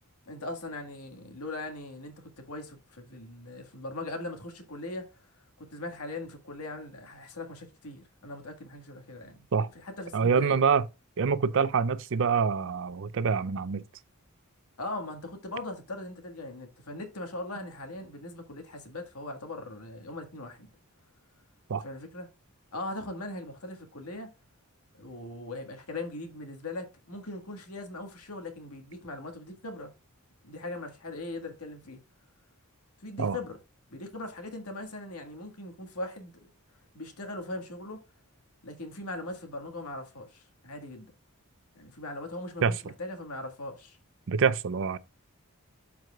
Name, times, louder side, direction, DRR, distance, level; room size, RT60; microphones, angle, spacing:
voice 1, 0.3-5.1 5.6-10.6 14.8-20.7 21.8-22.3 22.7-24.3 24.9-29.9 30.4-32.0 33.0-33.6 33.9-36.5 36.9-38.0 38.6-41.1 41.8-44.0, left 2 dB, 85° left, 1.7 m, -40 dB
voice 2, 10.1-10.9 11.2-13.8 21.7-21.8 33.2-33.4 42.6-42.7 44.3-45.0, right 6 dB, 60° right, 0.5 m, -25 dB
12.5 x 4.7 x 2.3 m
head